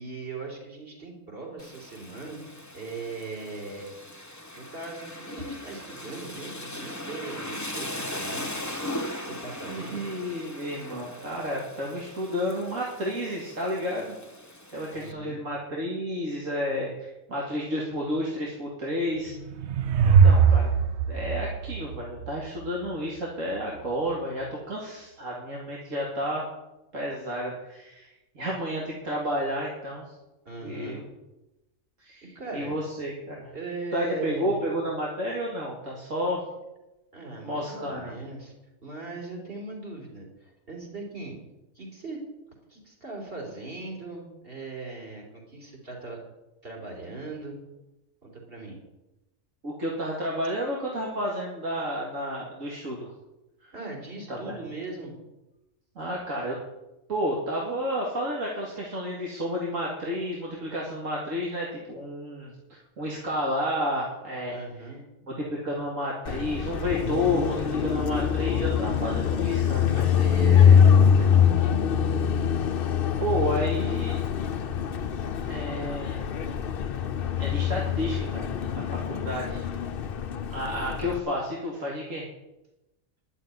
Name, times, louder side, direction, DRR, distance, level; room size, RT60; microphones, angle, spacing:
voice 1, 0.0-2.4 2.7-3.9 4.5-8.5 9.2-10.0 14.9-15.4 30.5-31.0 32.4-32.8 33.5-34.6 37.1-38.5 38.8-41.4 41.7-42.2 42.7-46.2 46.6-47.6 48.2-48.8 53.7-55.2 64.5-65.0 69.9-71.8, right 3 dB, 45° right, -1 dB, 3.8 m, -39 dB
Rain, 1.6-15.1, left 1 dB, 15° left, 1.1 m, -39 dB
voice 2, 9.7-14.2 14.7-19.3 20.0-20.7 21.1-26.5 26.9-30.1 30.6-31.0 32.0-33.5 33.9-36.4 37.4-38.1 49.6-53.1 53.6-53.7 54.3-54.6 56.0-56.6 57.1-64.6 65.3-69.9 73.2-74.2 75.5-76.3 77.4-79.6 80.5-82.3, equal, 80° right, -3 dB, 2.7 m, -31 dB
sound 1, 19.2-22.7, right 6 dB, 65° right, 0.9 m, -21 dB
Car passing by, 66.3-81.2, left 8 dB, 50° left, 0.8 m, -24 dB
11.5 x 7.2 x 9.5 m, 0.98 s
omnidirectional pair, 1.3 m